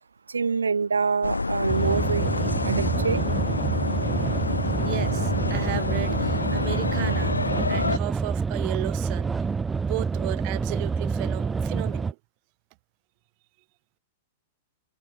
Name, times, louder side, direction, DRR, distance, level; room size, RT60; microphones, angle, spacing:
voice 1, 0.3-3.2, right 5 dB, 80° right, 1.2 m, -26 dB
sound 1, 1.2-8.0, left 3 dB, 90° left, 5.1 m, -27 dB
sound 2, 1.7-12.1, right 5 dB, 15° right, 3.8 m, -27 dB
voice 2, 4.7-7.4 7.7-9.5 9.9-12.2, right 40 dB or more, 45° right, 5.6 m, -35 dB
figure-of-eight pair, 100°, 0 cm